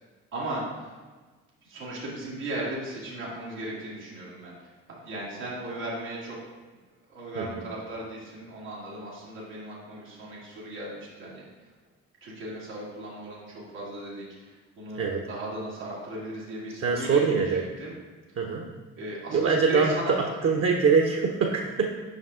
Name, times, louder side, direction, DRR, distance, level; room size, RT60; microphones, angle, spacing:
voice 1, 0.3-0.9 1.6-6.4 7.1-11.5 12.2-17.9 19.0-20.3, right 1 dB, 85° right, -8 dB, 1.6 m, -37 dB
voice 2, 14.9-15.3 16.8-17.7 18.4-18.7 19.3-21.9, right 5 dB, 40° right, 2 dB, 0.7 m, -24 dB
5.3 x 5.3 x 3.6 m, 1.3 s
hypercardioid pair, 55°, 36 cm